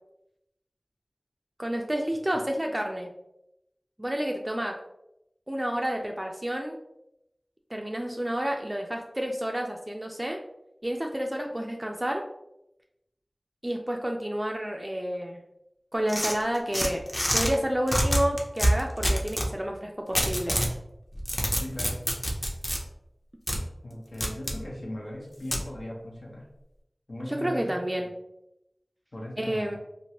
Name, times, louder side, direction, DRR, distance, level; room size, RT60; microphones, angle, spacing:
voice 1, 1.6-3.1 4.0-4.7 5.5-6.8 7.7-10.4 10.8-12.2 13.6-15.4 15.9-17.0 17.3-20.6 27.3-28.1 29.4-29.8, equal, 20° right, 1 dB, 0.3 m, -30 dB
sound 1, 16.1-17.5 17.9-19.5 20.1-20.7 21.1-22.8 23.5-23.6 24.2-24.6 25.5-25.6, equal, 25° left, 0.6 m, -26 dB
voice 2, 21.6-22.0 23.8-26.5 27.1-27.8 29.1-29.8, left 1 dB, 80° left, -3 dB, 0.9 m, -38 dB
3.0 x 2.4 x 2.8 m, 0.86 s
wide cardioid pair, 55°, 0 cm